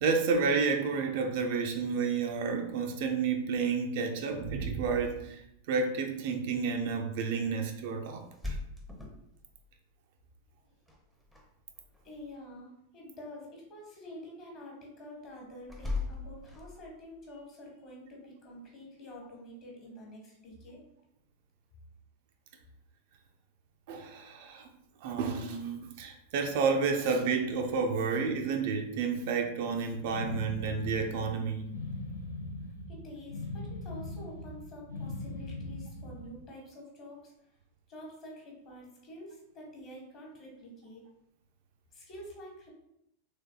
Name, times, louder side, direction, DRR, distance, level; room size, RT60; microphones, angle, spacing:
voice 1, 0.0-5.4 5.7-8.6 23.9-24.7 25.0-31.7, right 5 dB, 50° right, 4 dB, 0.4 m, -30 dB
sound 1, 8.2-9.7 10.9-11.4 11.7-12.2 15.7-17.1, left 3 dB, 5° left, 0.6 m, -38 dB
voice 2, 12.0-20.8 32.9-37.3 37.9-41.0 41.9-42.7, left 1 dB, 35° left, -2 dB, 1.2 m, -48 dB
sound 2, 30.1-36.4, left 2 dB, 75° left, 0.5 m, -40 dB
3.3 x 3.2 x 2.2 m, 0.78 s
figure-of-eight pair, 90°, 0 cm